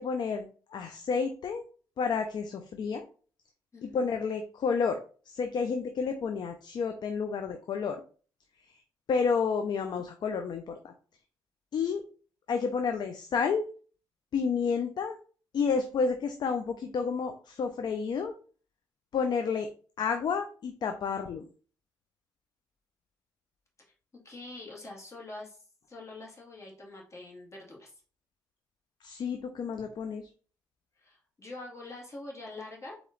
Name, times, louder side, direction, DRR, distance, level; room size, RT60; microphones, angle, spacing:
voice 1, 0.0-1.6 2.0-3.1 3.8-8.0 9.1-10.9 11.7-12.0 12.5-13.7 14.3-15.2 15.5-18.3 19.1-19.7 20.0-21.5 29.0-30.3, left 5 dB, 60° left, 6 dB, 0.6 m, -30 dB
voice 2, 3.7-4.1 23.9-24.0 24.2-27.9 31.0-33.0, left 2 dB, 35° left, -3 dB, 2.2 m, -45 dB
4.2 x 3.0 x 3.8 m, 0.40 s
supercardioid pair, 60°, 8 cm